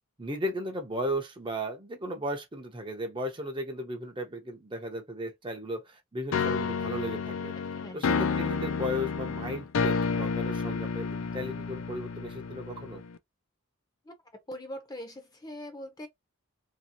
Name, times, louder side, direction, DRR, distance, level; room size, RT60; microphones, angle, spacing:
voice 1, 0.2-7.5 7.9-13.0, equal, 25° right, 0.7 m, -35 dB
sound 1, 6.3-13.2, left 5 dB, 70° left, 0.4 m, -30 dB
voice 2, 7.7-8.2 14.0-14.1 14.5-16.1, equal, 20° left, 0.7 m, -42 dB
3.0 x 2.8 x 2.8 m
head